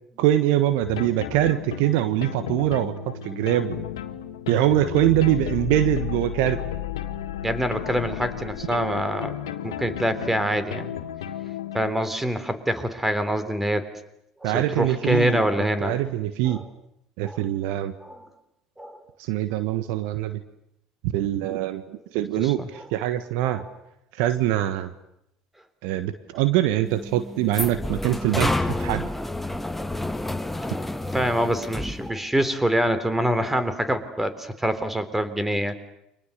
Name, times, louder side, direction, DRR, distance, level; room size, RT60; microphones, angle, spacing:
voice 1, 0.2-2.9 3.2-3.8 4.5-6.6 14.4-16.6 17.2-17.9 19.2-20.4 21.0-23.6 24.2-24.9 25.8-28.5 28.8-29.0, right 13 dB, 65° right, 11 dB, 1.4 m, -23 dB
sound 1, 0.8-11.9, left 10 dB, 80° left, 1.6 m, -33 dB
voice 2, 7.4-9.4 9.6-10.9 11.7-13.9 14.4-16.0 16.4-16.6 17.2-17.5 18.0-18.3 18.8-19.0 22.3-22.7 23.4-23.6 30.5-35.7, equal, 10° right, 12 dB, 3.5 m, -25 dB
sound 2, 26.8-32.1, left 1 dB, 5° left, 1.5 m, -29 dB
29.5 x 25.5 x 6.8 m, 0.80 s
hypercardioid pair, 70°, 2 cm